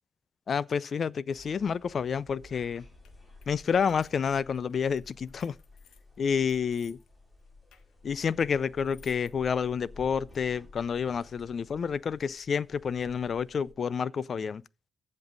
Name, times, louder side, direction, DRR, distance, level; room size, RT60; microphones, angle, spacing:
voice 1, 0.5-2.9 3.5-5.5 6.2-7.0 8.0-14.6, left 6 dB, 55° left, 0.5 m, -29 dB
sound 1, 1.3-13.7, left 3 dB, 25° left, 4.5 m, -53 dB
sound 2, 1.9-2.0 2.5-7.1 7.4-9.3 10.3-10.4, left 8 dB, 85° left, 1.2 m, -61 dB
15.0 x 5.4 x 3.9 m
cardioid pair, 65°, 0 cm